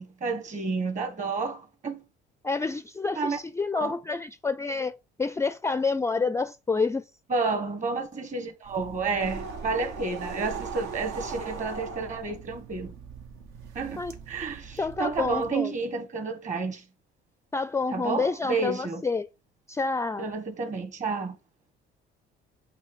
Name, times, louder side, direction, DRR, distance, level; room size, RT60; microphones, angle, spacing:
voice 1, 0.0-2.0 3.1-3.4 3.7-3.9 7.3-12.9 13.7-16.8 17.9-19.0 20.2-21.4, right 4 dB, 35° right, 1.7 m, -30 dB
voice 2, 2.4-7.0 14.0-14.1 14.8-15.7 17.5-19.3 19.7-20.3, left 4 dB, 15° left, 0.4 m, -28 dB
sound 1, 8.7-15.5, right 5 dB, 80° right, 1.3 m, -39 dB
8.1 x 3.1 x 6.1 m
cardioid pair, 95°, 21 cm